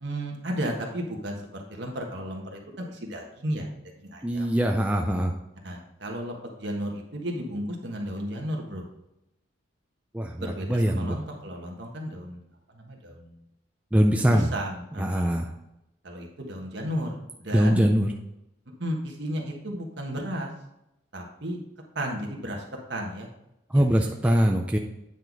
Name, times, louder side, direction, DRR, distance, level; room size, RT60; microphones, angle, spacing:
voice 1, 0.0-3.7 4.0-4.5 5.6-8.9 10.4-12.4 12.7-13.3 14.1-15.4 16.0-17.2 17.4-17.8 18.8-20.5 21.1-21.6 21.9-22.6 22.9-23.3 23.7-24.3, equal, 60° right, 1 dB, 1.4 m, -34 dB
voice 2, 4.2-5.3 10.1-11.2 13.9-14.5 15.0-15.5 17.5-18.1 23.7-24.8, equal, 5° right, 1 dB, 0.4 m, -22 dB
9.1 x 4.1 x 4.6 m, 0.87 s
head